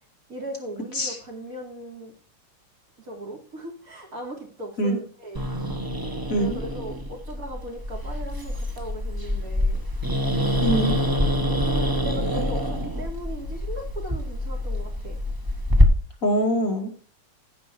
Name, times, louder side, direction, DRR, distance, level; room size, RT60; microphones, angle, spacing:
voice 1, 0.3-2.1 3.0-5.5 6.3-9.8 11.4-15.2, right 1 dB, 45° right, -1 dB, 4.0 m, -38 dB
Growling, 5.3-15.8, left 1 dB, 15° right, 0.9 m, -25 dB
voice 2, 6.3-6.6 10.6-11.0 16.2-16.9, equal, 40° left, 1 dB, 2.8 m, -23 dB
15.5 x 5.3 x 4.3 m, 0.43 s
omnidirectional pair, 2.2 m